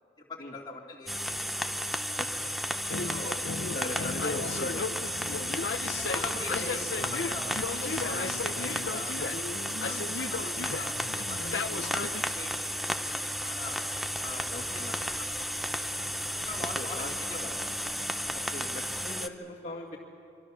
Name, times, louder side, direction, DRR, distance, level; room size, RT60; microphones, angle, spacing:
voice 1, 0.2-1.8 2.1-2.5 3.1-4.1 5.2-5.6 5.9-7.6 8.0-10.9 11.3-13.8 14.2-15.7 16.3-17.0 17.3-18.0, left 3 dB, 25° left, -2 dB, 2.7 m, -44 dB
radio noise clicks, 1.1-19.3, equal, ahead, 0.6 m, -33 dB
sound 1, 2.9-12.2, left 4 dB, 70° left, 0.7 m, -35 dB
voice 2, 3.7-5.0 6.5-7.0 7.5-7.7 8.2-8.3 11.7-11.9 14.5-15.0 16.8-17.1 18.3-20.0, left 2 dB, 40° left, -4 dB, 2.0 m, -40 dB
25.5 x 24.5 x 6.3 m, 2.3 s
head